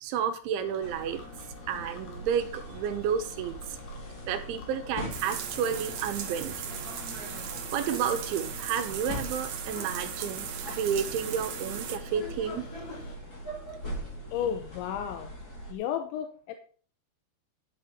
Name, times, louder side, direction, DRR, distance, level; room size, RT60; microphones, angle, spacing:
voice 1, 0.0-1.2 1.7-3.6 4.3-6.6 7.7-12.7, right 8 dB, 85° right, 7 dB, 3.5 m, -31 dB
sound 1, 0.6-13.2, left 4 dB, 55° left, 3.3 m, -50 dB
sound 2, 0.8-15.7, equal, 25° left, 2.4 m, -41 dB
sound 3, 5.1-12.0, right 8 dB, 65° right, 2.1 m, -38 dB
voice 2, 14.3-15.3 15.7-16.6, left 9 dB, 85° left, 6 dB, 3.3 m, -32 dB
11.5 x 6.7 x 5.4 m, 0.42 s
omnidirectional pair, 5.2 m